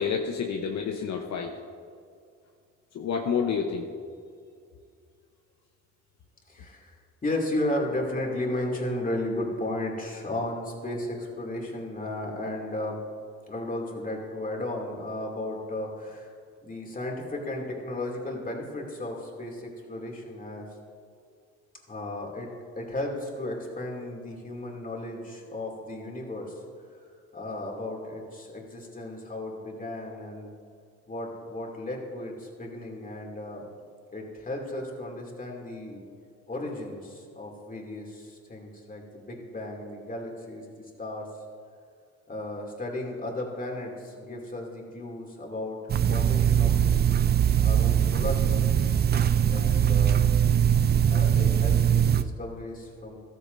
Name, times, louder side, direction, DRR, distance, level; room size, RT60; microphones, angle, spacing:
voice 1, 0.0-1.5 2.9-3.8, left 6 dB, 65° left, 2 dB, 1.0 m, -29 dB
voice 2, 6.5-7.0 7.2-13.0 13.5-16.3 16.6-20.7 21.9-22.5 22.8-26.6 26.9-27.0 27.3-30.5 31.1-33.7 34.1-36.1 36.5-41.3 42.3-47.0 47.6-48.8 49.5-50.2 51.1-53.2, left 1 dB, 25° left, 0 dB, 2.7 m, -34 dB
sound 1, 45.9-52.2, right 9 dB, 35° right, 0.4 m, -22 dB
14.0 x 13.5 x 2.7 m, 2.2 s
cardioid pair, 90°, 30 cm